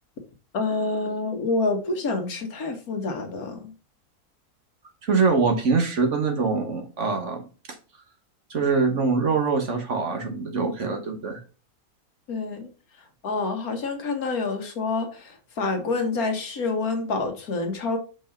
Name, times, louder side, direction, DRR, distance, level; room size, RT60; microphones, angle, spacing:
voice 1, 0.5-3.6 12.3-12.7 13.2-18.0, left 3 dB, 75° left, 5 dB, 1.8 m, -27 dB
voice 2, 5.0-7.5 8.5-11.4, right 4 dB, 55° right, 4 dB, 1.5 m, -24 dB
5.3 x 4.8 x 5.6 m, 0.36 s
omnidirectional pair, 1.6 m